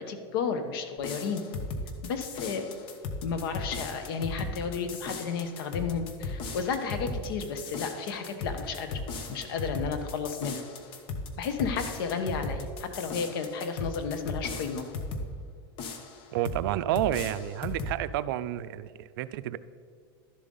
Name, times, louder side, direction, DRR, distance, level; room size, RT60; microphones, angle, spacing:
voice 1, 0.0-1.4 2.0-2.6 3.2-9.0 9.3-10.6 11.3-14.9, left 5 dB, 70° left, 8 dB, 1.2 m, -32 dB
sound 1, 1.0-15.3 15.8-16.6 16.9-18.0, left 3 dB, 45° left, 1.0 m, -37 dB
voice 2, 16.3-19.6, right 13 dB, 70° right, 15 dB, 0.4 m, -30 dB
12.0 x 7.5 x 3.9 m, 2.2 s
supercardioid pair, 140°, 12 cm